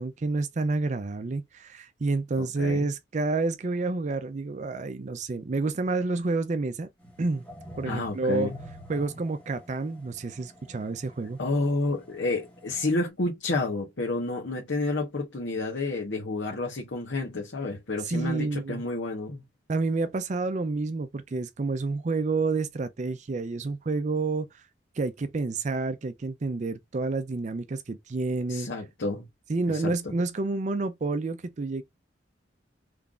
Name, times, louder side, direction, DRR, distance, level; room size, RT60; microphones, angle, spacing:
voice 1, 0.0-6.9 7.2-7.4 7.8-8.5 8.9-11.4 18.0-18.8 19.7-24.6 25.0-28.7 29.5-31.8, right 3 dB, 40° right, 0.4 m, -29 dB
voice 2, 2.4-2.9 7.8-8.6 11.4-19.4 28.5-29.3 29.7-30.1, left 2 dB, 85° left, 1.1 m, -30 dB
sound 1, 7.0-13.1, equal, 5° left, 1.7 m, -48 dB
3.8 x 3.3 x 2.4 m
head